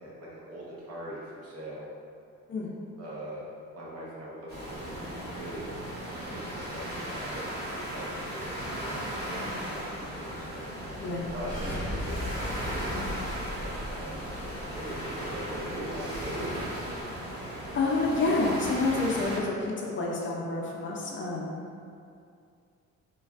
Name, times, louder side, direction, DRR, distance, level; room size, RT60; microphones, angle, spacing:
voice 1, 0.0-1.8 3.0-3.5 3.7-5.7 6.3-10.6 11.3-12.8 13.6-14.2 14.7-16.6, right 1 dB, 55° right, -6 dB, 0.9 m, -41 dB
sound 1, 4.5-19.4, equal, 35° right, 1.1 m, -37 dB
sound 2, 11.3-16.2, left 1 dB, 10° right, 0.9 m, -38 dB
voice 2, 17.7-21.6, left 3 dB, 40° left, -3 dB, 0.5 m, -29 dB
3.2 x 2.3 x 2.4 m, 2.4 s
cardioid pair, 90°, 30 cm